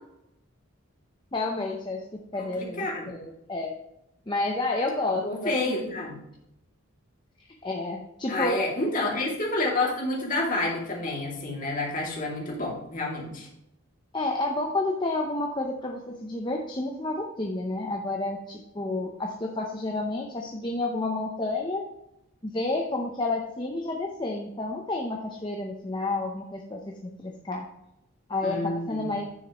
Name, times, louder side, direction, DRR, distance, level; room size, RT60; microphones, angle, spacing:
voice 1, 1.3-2.0 2.3-3.7 4.3-5.8 7.6-8.6 14.1-21.8 22.4-27.7 28.3-29.2, left 2 dB, 20° left, 1 dB, 0.7 m, -30 dB
voice 2, 2.4-3.2 5.2-6.2 8.3-13.5 28.4-29.1, left 2 dB, 40° left, -2 dB, 2.4 m, -29 dB
9.5 x 7.1 x 3.0 m, 0.84 s
head